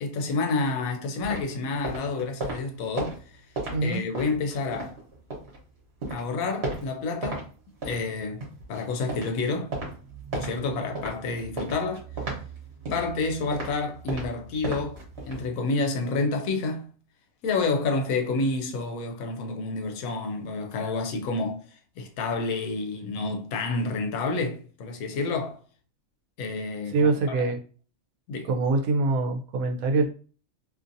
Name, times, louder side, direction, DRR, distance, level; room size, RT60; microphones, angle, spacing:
voice 1, 0.0-3.2 3.8-5.0 6.1-7.5 7.8-9.7 10.3-12.0 12.9-15.0 15.3-16.9 17.4-21.6 22.0-25.6 26.4-27.5 28.3-28.5, left 3 dB, 90° left, 1.0 m, -29 dB
sound 1, 1.2-5.6 5.9-7.4 7.7-15.5, right 2 dB, 55° right, 1.2 m, -36 dB
voice 2, 3.7-4.0 26.9-27.6 28.4-30.1, right 3 dB, 85° right, 1.1 m, -24 dB
2.8 x 2.5 x 2.5 m
omnidirectional pair, 1.4 m